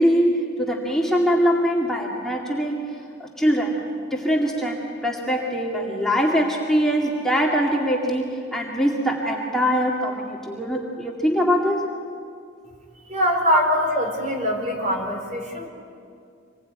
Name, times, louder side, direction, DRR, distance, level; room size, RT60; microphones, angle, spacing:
voice 1, 0.0-2.8 3.2-11.9 13.5-13.6, equal, ahead, -3 dB, 2.2 m, -22 dB
voice 2, 13.1-15.7, equal, 40° right, 2 dB, 4.3 m, -23 dB
26.0 x 21.0 x 9.3 m, 2.3 s
head